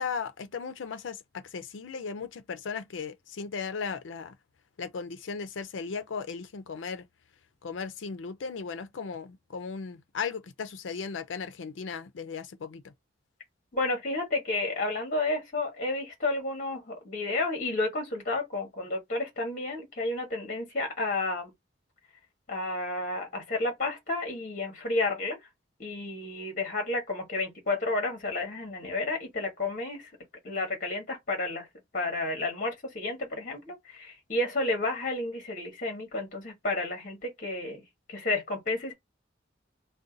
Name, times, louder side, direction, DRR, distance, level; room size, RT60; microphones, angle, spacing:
voice 1, 0.0-4.3 4.8-7.0 7.6-12.9, left 5 dB, 90° left, 0.5 m, -36 dB
voice 2, 13.7-21.5 22.5-25.4 25.8-30.1 30.4-31.7 31.9-37.8 38.1-38.9, left 2 dB, 45° left, 1.2 m, -31 dB
2.6 x 2.2 x 3.8 m
head